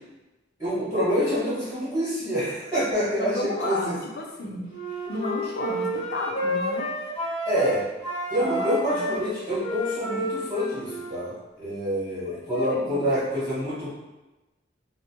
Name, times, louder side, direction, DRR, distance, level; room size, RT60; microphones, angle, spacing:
voice 1, 0.6-4.0 7.5-7.8 8.3-13.9, equal, 15° right, -15 dB, 1.2 m, -27 dB
voice 2, 3.2-4.7 5.1-6.8 8.4-9.0 12.3-13.1, left 2 dB, 60° left, 0 dB, 0.5 m, -32 dB
Wind instrument woodwind instrument, 4.7-7.7 8.0-11.3, equal, 30° left, 0.9 m, -31 dB
2.9 x 2.1 x 2.8 m, 1.1 s
head